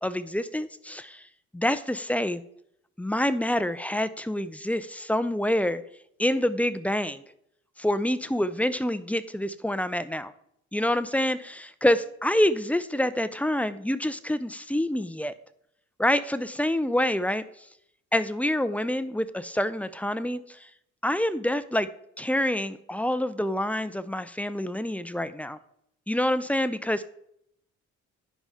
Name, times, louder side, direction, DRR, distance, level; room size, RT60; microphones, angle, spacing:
voice 1, 0.0-1.2 1.5-2.4 3.0-5.8 6.2-7.2 7.8-10.3 10.7-15.3 16.0-17.4 18.1-20.4 21.0-21.9 22.2-25.6 26.1-27.1, left 1 dB, 5° left, 13 dB, 0.5 m, -27 dB
10.5 x 4.8 x 5.6 m, 0.73 s
cardioid pair, 90°, 30 cm